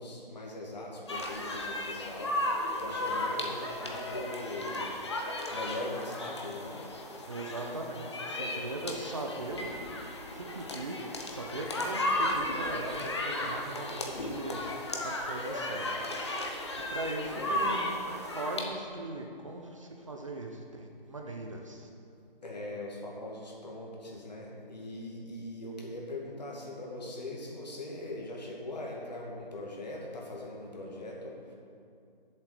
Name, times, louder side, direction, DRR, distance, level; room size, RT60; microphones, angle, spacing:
voice 1, 0.0-4.9 5.5-6.8 17.4-17.5 22.4-31.5, left 1 dB, 45° left, -2 dB, 2.3 m, -41 dB
sound 1, 1.1-18.6, left 1 dB, 30° left, 0.9 m, -35 dB
voice 2, 7.3-9.7 10.3-11.0 11.3-14.6 15.0-16.2 16.9-17.9 18.2-21.9, right 2 dB, 35° right, 2 dB, 0.8 m, -39 dB
8.0 x 7.6 x 7.8 m, 2.4 s
figure-of-eight pair, 165°, 29 cm